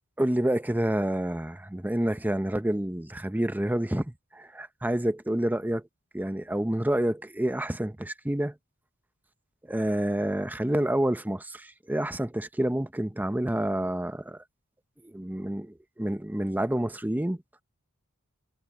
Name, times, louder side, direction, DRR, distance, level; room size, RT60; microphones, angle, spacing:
voice 1, 0.2-5.8 6.1-8.5 9.7-14.4 15.0-17.4, right 1 dB, 10° right, 0.7 m, -28 dB
head